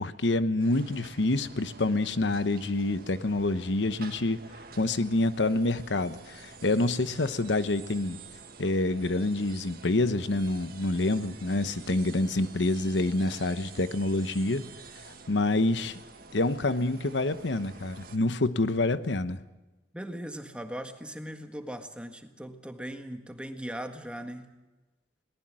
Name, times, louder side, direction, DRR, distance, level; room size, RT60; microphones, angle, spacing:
voice 1, 0.0-4.4 4.8-8.2 8.6-14.7 15.3-16.0 16.3-19.4, left 2 dB, 85° left, 12 dB, 1.0 m, -27 dB
sound 1, 0.6-18.2, right 4 dB, 55° right, 1.8 m, -49 dB
voice 2, 19.9-24.5, equal, 5° right, 6 dB, 1.7 m, -39 dB
21.5 x 19.0 x 7.6 m, 1.1 s
head